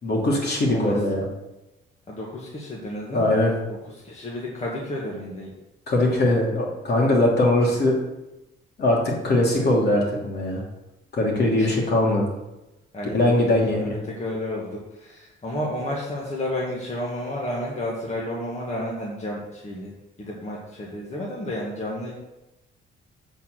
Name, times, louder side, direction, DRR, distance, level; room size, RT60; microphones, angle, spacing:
voice 1, 0.0-1.2 3.1-3.5 5.9-7.9 8.8-10.6 11.1-12.3 13.1-13.8, left 1 dB, 55° left, -2 dB, 2.8 m, -21 dB
voice 2, 2.1-3.4 3.7-3.8 4.0-5.5 11.6-11.7 12.9-19.9 20.2-22.1, left 1 dB, 35° left, -3 dB, 1.8 m, -31 dB
8.1 x 4.5 x 6.6 m, 0.98 s
cardioid pair, 90°, 20 cm